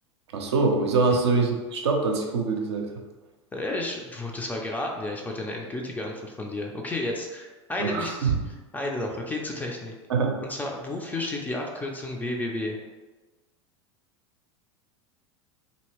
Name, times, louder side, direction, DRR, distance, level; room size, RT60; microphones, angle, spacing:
voice 1, 0.3-2.9 7.8-8.3 10.1-10.4, right 4 dB, 65° right, 2 dB, 0.5 m, -24 dB
voice 2, 3.5-8.3 8.7-9.9 10.4-12.8, left 2 dB, 10° left, 0 dB, 0.4 m, -32 dB
2.8 x 2.6 x 3.0 m, 1.2 s
figure-of-eight pair, 85°, 15 cm